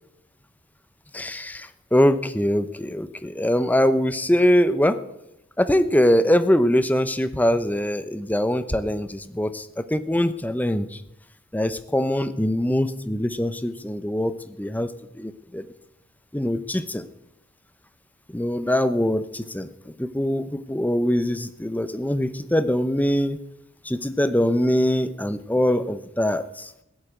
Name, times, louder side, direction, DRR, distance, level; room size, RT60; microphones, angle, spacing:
voice 1, 1.1-5.0 5.6-11.0 11.5-15.6 16.3-17.0 18.3-19.7 20.0-23.4 23.8-26.7, left 1 dB, 10° left, 13 dB, 0.7 m, -23 dB
16.0 x 8.8 x 8.2 m, 0.84 s
head